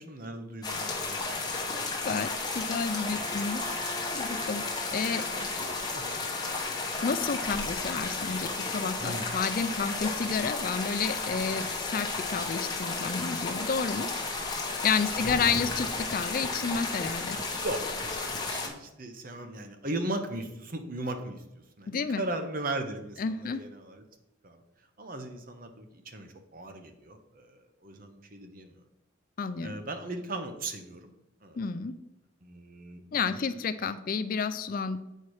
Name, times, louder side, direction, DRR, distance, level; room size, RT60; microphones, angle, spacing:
voice 1, 0.0-1.3 2.8-3.3 5.3-6.0 9.0-9.4 14.4-14.5 15.1-15.7 17.4-24.0 24.4-24.6 25.0-28.7 29.6-31.1 31.4-31.7 32.4-33.0 33.3-33.4, right 2 dB, 45° right, 6 dB, 0.9 m, -38 dB
sound 1, 0.6-18.7, left 3 dB, 20° left, 1.1 m, -33 dB
voice 2, 2.0-3.6 4.1-5.3 7.0-14.1 14.8-17.4 21.9-22.2 23.2-23.6 29.4-29.7 31.6-31.9 33.1-35.0, left 5 dB, 45° left, 12 dB, 0.4 m, -31 dB
Wind instrument woodwind instrument, 3.1-7.7, left 1 dB, 5° left, 2.0 m, -44 dB
8.3 x 4.5 x 4.8 m, 0.92 s
head